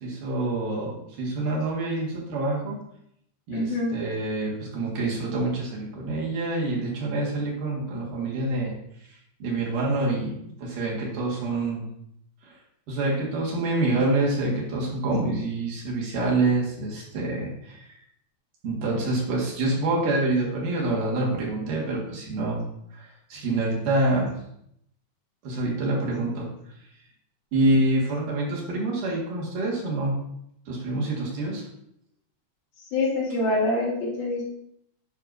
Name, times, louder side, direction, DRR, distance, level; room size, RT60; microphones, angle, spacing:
voice 1, 0.0-2.8 3.5-8.7 9.4-11.8 12.4-12.5 12.9-17.9 18.6-22.6 22.9-24.4 25.4-26.5 27.5-30.2 30.7-31.7, right 2 dB, 85° right, -3 dB, 3.4 m, -26 dB
voice 2, 3.5-3.9 32.9-34.4, left 2 dB, 65° left, -4 dB, 3.0 m, -25 dB
10.5 x 5.2 x 2.6 m, 0.74 s
omnidirectional pair, 3.6 m